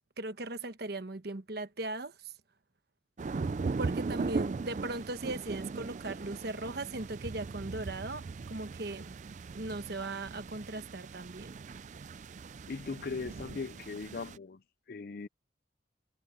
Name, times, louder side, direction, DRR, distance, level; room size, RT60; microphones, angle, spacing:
voice 1, 0.2-2.3 3.8-9.1 9.5-11.5, right 2 dB, 55° right, 1.2 m, -38 dB
sound 1, 3.2-14.4, right 4 dB, 40° right, 0.3 m, -38 dB
voice 2, 12.7-15.3, left 4 dB, 50° left, 0.5 m, -39 dB
head